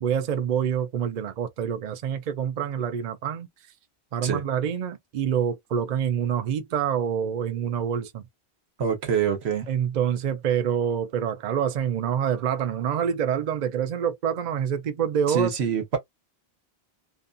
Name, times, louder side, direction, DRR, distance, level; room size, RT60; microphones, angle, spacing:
voice 1, 0.0-3.5 4.1-8.2 9.7-15.5, right 8 dB, 55° right, 0.6 m, -26 dB
voice 2, 8.8-9.7 15.3-16.0, right 7 dB, 85° right, 1.1 m, -25 dB
2.6 x 2.2 x 2.5 m
omnidirectional pair, 1.1 m